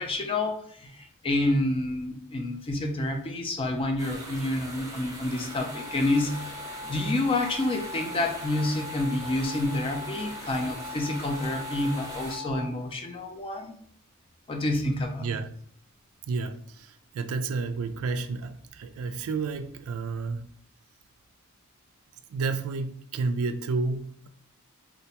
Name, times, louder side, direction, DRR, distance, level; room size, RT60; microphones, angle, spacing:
voice 1, 0.0-6.6 6.9-13.8 14.5-15.3, left 2 dB, 25° left, 0.4 m, -28 dB
sound 1, 4.0-12.4, right 1 dB, 15° right, 0.8 m, -41 dB
sound 2, 5.5-12.7, left 4 dB, 90° left, 1.1 m, -41 dB
voice 2, 15.2-15.5 16.3-20.5 22.3-24.3, right 4 dB, 70° right, 0.3 m, -31 dB
3.8 x 2.2 x 2.8 m
head